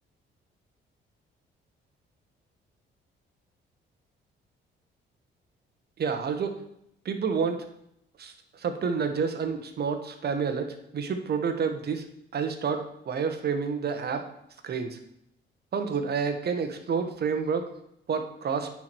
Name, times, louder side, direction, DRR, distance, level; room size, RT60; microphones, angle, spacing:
voice 1, 6.0-6.6 7.0-7.7 8.2-12.1 12.3-14.3 14.6-15.0 15.7-17.7 18.1-18.7, right 6 dB, 55° right, 7 dB, 1.4 m, -29 dB
9.7 x 4.9 x 6.2 m, 0.77 s
cardioid pair, 90°, 20 cm